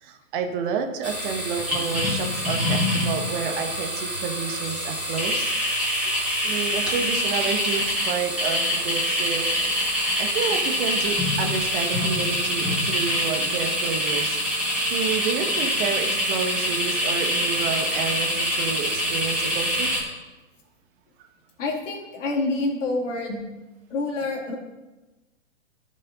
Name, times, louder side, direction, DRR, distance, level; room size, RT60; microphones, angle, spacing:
voice 1, 0.0-5.5 6.4-9.5 10.2-19.9, right 6 dB, 40° right, 5 dB, 1.1 m, -30 dB
sound 1, 1.0-20.0, equal, 5° right, 3.3 m, -25 dB
voice 2, 21.6-23.4 23.9-24.5, left 2 dB, 65° left, -1 dB, 2.7 m, -27 dB
14.0 x 5.5 x 4.0 m, 1.1 s
hypercardioid pair, 140°, 40 cm